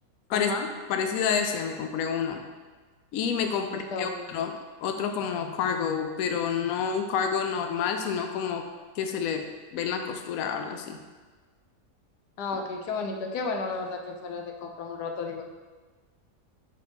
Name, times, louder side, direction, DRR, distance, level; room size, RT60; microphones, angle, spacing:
voice 1, 0.3-0.7 3.6-4.2 12.4-15.4, left 4 dB, 85° left, 3 dB, 1.3 m, -33 dB
voice 2, 0.9-2.4 3.1-8.6 9.0-9.5 9.7-11.0, left 7 dB, 70° left, 5 dB, 0.9 m, -29 dB
5.2 x 4.4 x 5.2 m, 1.4 s
omnidirectional pair, 1.7 m